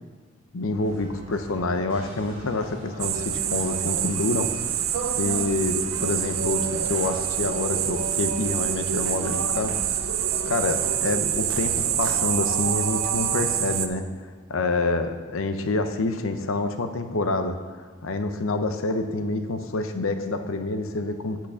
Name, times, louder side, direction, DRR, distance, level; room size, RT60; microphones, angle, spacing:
voice 1, 0.5-4.5 5.2-10.1 10.5-14.0 14.5-17.6 18.0-21.5, left 2 dB, 85° left, 8 dB, 0.7 m, -27 dB
sound 1, 0.7-12.4, equal, 30° right, 2.9 m, -43 dB
sound 2, 3.0-13.9, right 9 dB, 85° right, 0.6 m, -26 dB
8.5 x 6.0 x 6.8 m, 1.5 s
head